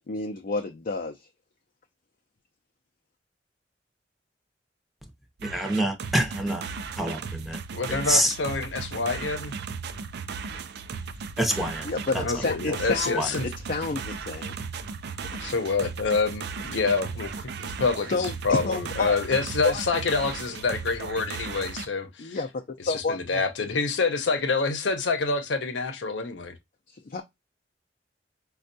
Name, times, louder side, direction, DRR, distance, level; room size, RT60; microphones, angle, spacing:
voice 1, 0.1-1.3 11.8-14.5 15.1-15.2 18.1-19.2 19.6-19.8 22.2-22.5 22.9-23.4 26.9-27.2, left 3 dB, 50° left, 0.4 m, -30 dB
voice 2, 5.4-6.6 7.0-7.6 7.9-8.3 11.4-11.9 12.1-12.2 13.1-13.3, equal, ahead, 0.6 m, -26 dB
sound 1, 5.4-21.9, right 5 dB, 60° right, 0.4 m, -36 dB
voice 3, 7.7-9.5 12.2-13.5 15.4-22.4 22.8-26.5, left 4 dB, 90° left, 0.7 m, -27 dB
4.4 x 2.3 x 2.5 m
head